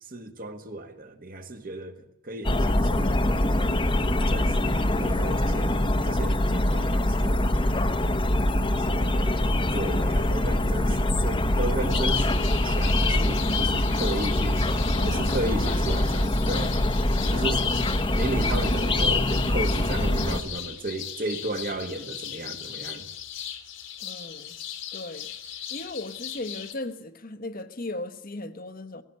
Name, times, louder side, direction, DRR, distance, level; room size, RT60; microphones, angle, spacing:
voice 1, 0.0-3.5 4.3-7.6 8.8-9.4 9.7-16.8 17.3-17.7 18.1-23.1, right 2 dB, 45° right, 1.7 m, -34 dB
sound 1, 2.4-20.4, left 1 dB, 25° left, 1.0 m, -24 dB
sound 2, 11.9-26.7, left 9 dB, 65° left, 2.0 m, -38 dB
voice 2, 14.8-15.3 15.6-16.3 17.0-17.8 24.0-24.6 24.9-25.3 25.7-29.0, left 2 dB, 45° left, 1.2 m, -38 dB
17.5 x 16.5 x 9.6 m
head